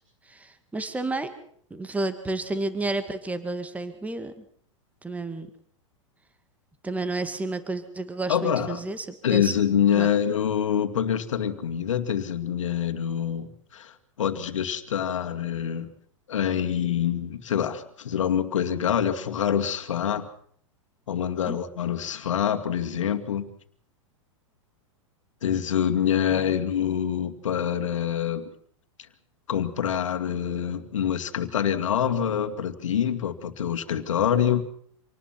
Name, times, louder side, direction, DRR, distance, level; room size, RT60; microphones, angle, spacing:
voice 1, 0.2-1.3 1.7-4.4 5.0-5.5 6.8-9.5 9.9-10.1 21.4-21.6 26.3-26.5, right 2 dB, 10° right, 10 dB, 2.2 m, -31 dB
voice 2, 8.3-8.8 9.2-15.9 16.3-20.3 21.1-23.5 25.4-28.5 29.5-34.6, left 9 dB, 75° left, 6 dB, 2.3 m, -26 dB
27.0 x 19.0 x 6.0 m, 0.62 s
hypercardioid pair, 105°, 16 cm